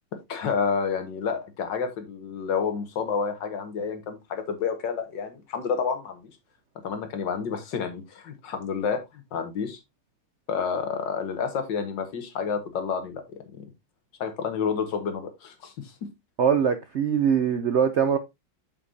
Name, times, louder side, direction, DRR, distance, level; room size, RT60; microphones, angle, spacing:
voice 1, 0.1-6.2 6.8-9.8 10.5-13.7 14.2-16.1, left 6 dB, 80° left, 7 dB, 2.0 m, -29 dB
voice 2, 16.4-18.2, right 7 dB, 70° right, 9 dB, 0.6 m, -22 dB
7.4 x 6.7 x 2.7 m, 0.21 s
omnidirectional pair, 2.0 m